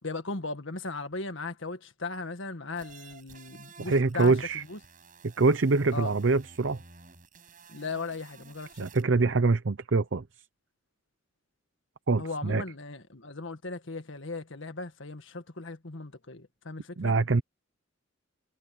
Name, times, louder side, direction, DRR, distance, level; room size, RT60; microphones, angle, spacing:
voice 1, 0.0-4.3 4.7-4.8 5.9-6.1 7.7-8.7 12.2-17.1, left 3 dB, 70° left, 1.7 m, -37 dB
sound 1, 2.8-9.0, right 4 dB, 40° right, 7.5 m, -53 dB
voice 2, 3.8-4.6 5.4-6.8 8.8-10.2 12.1-12.6 17.0-17.4, right 3 dB, 65° right, 0.7 m, -24 dB
head